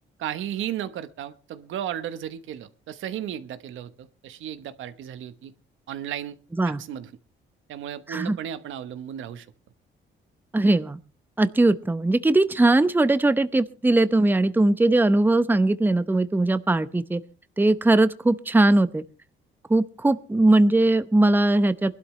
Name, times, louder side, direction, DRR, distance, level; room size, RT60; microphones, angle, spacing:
voice 1, 0.2-5.5 5.9-6.4 6.6-7.1 7.7-9.5, right 10 dB, 80° right, 12 dB, 1.1 m, -34 dB
voice 2, 10.5-11.0 11.4-17.2 17.6-19.0 19.7-21.9, right 2 dB, 10° right, 13 dB, 0.7 m, -20 dB
21.5 x 12.0 x 3.2 m, 0.34 s
cardioid pair, 90°, 20 cm